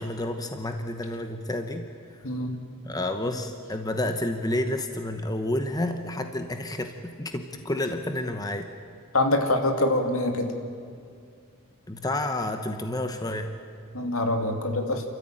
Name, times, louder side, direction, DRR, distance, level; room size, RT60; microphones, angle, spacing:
voice 1, 0.0-1.9 2.8-8.7 11.9-13.5, left 1 dB, 20° left, 7 dB, 1.0 m, -30 dB
voice 2, 2.2-2.6 9.1-10.5 13.9-15.0, left 1 dB, 75° left, 4 dB, 2.5 m, -25 dB
28.5 x 14.0 x 9.1 m, 2.3 s
head